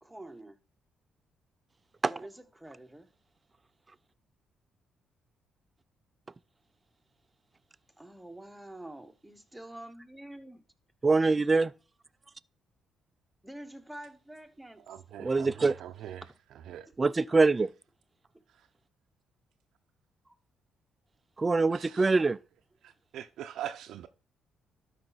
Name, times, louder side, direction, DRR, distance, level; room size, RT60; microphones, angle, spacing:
voice 1, 0.0-0.6 2.0-3.1 8.0-10.6 13.4-14.8 16.9-17.3 20.2-20.3, right 1 dB, 5° right, 1.1 m, -47 dB
voice 2, 11.0-11.7 15.2-15.7 17.0-17.7 21.4-22.4, right 3 dB, 25° right, 0.3 m, -24 dB
voice 3, 14.9-16.2 16.7-16.9 21.7-22.1 22.8-24.1, right 11 dB, 80° right, 0.5 m, -42 dB
12.5 x 4.9 x 4.0 m
cardioid pair, 90°, 0 cm